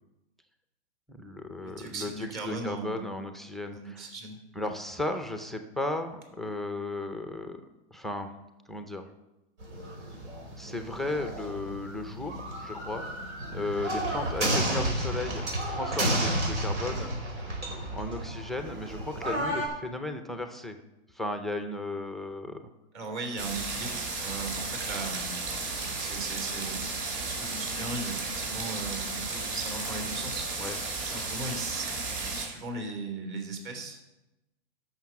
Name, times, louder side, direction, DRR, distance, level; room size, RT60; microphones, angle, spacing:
voice 1, 1.1-4.1 4.6-7.6 7.9-8.3 8.7-9.1 10.5-13.1 13.4-15.4 15.7-17.1 17.9-20.8 21.1-22.6 30.6-30.8, left 2 dB, ahead, 6 dB, 0.4 m, -35 dB
voice 2, 1.6-3.1 3.7-4.7 22.9-26.9 27.2-30.5 31.0-34.0, right 3 dB, 40° right, 3 dB, 3.2 m, -38 dB
sound 1, 9.6-19.7, right 1 dB, 90° right, 4.3 m, -32 dB
sound 2, 23.4-32.5, right 3 dB, 60° right, 4.3 m, -34 dB
13.0 x 6.5 x 5.8 m, 0.99 s
hypercardioid pair, 140°, 34 cm